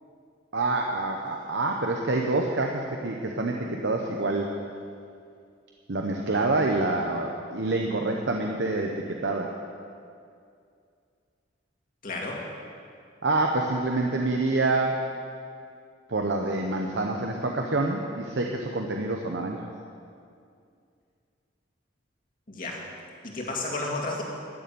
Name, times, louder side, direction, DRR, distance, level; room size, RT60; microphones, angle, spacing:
voice 1, 0.5-4.5 5.9-9.5 13.2-15.0 16.1-19.6, right 2 dB, 70° right, 1 dB, 0.9 m, -27 dB
voice 2, 12.0-12.4 22.5-22.8 23.2-24.2, left 2 dB, 50° left, -1 dB, 2.2 m, -32 dB
13.0 x 6.9 x 9.3 m, 2.4 s
head